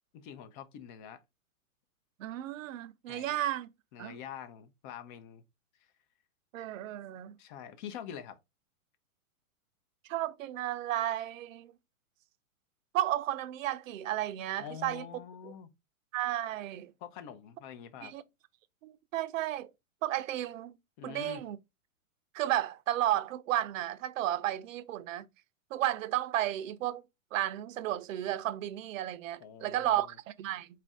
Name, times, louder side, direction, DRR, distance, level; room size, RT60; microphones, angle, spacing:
voice 1, 0.1-1.2 3.1-3.4 3.9-5.4 7.4-8.4 14.6-15.7 17.0-18.1 21.0-21.4 29.4-30.1, left 8 dB, 35° left, 0.6 m, -45 dB
voice 2, 2.2-3.7 4.0-4.2 6.5-7.3 10.1-11.7 12.9-15.0 15.4-15.5 16.1-16.9 18.0-18.2 18.8-19.7 20.0-20.8 21.0-21.6 22.3-25.2 25.7-27.0 27.3-30.7, right 13 dB, 65° right, 0.6 m, -33 dB
4.3 x 2.5 x 3.5 m
hypercardioid pair, 130°, 42 cm